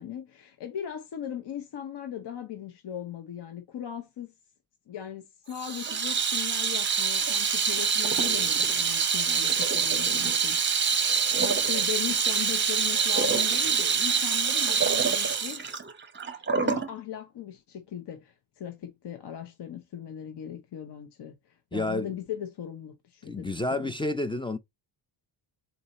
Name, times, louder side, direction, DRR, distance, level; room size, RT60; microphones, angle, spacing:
voice 1, 0.0-4.3 4.9-15.6 16.3-23.9, left 10 dB, 55° left, 0.9 m, -39 dB
Water tap faucet / Sink (filling or washing), 5.5-16.9, right 6 dB, 25° right, 0.7 m, -25 dB
voice 2, 21.7-22.1 23.3-24.6, left 2 dB, 10° left, 0.3 m, -30 dB
4.0 x 2.7 x 4.0 m
cardioid pair, 95°, 49 cm